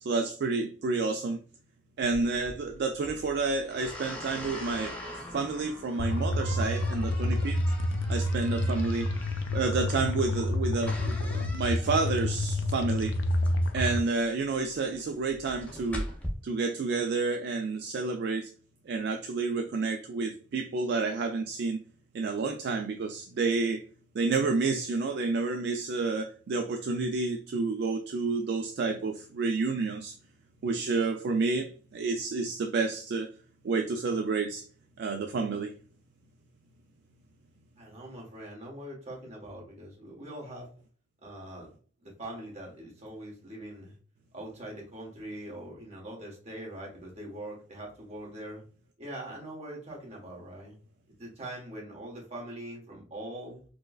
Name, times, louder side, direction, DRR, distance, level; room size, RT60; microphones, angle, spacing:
voice 1, 0.0-1.4 2.0-5.0 5.3-7.6 8.1-9.1 9.5-13.2 13.7-16.0 16.4-18.5 18.9-21.8 22.1-23.8 24.1-30.1 30.6-33.3 33.6-34.7 35.0-35.8, right 3 dB, 60° right, 0.3 m, -30 dB
sound 1, 2.0-16.3, equal, 10° left, 0.6 m, -43 dB
sound 2, 6.0-14.0, left 1 dB, 85° left, 0.4 m, -29 dB
voice 2, 37.8-40.7 41.2-41.7 42.0-43.9 44.3-48.6 49.0-50.8 51.2-53.6, right 1 dB, 35° right, 1.3 m, -42 dB
4.3 x 2.1 x 2.3 m
head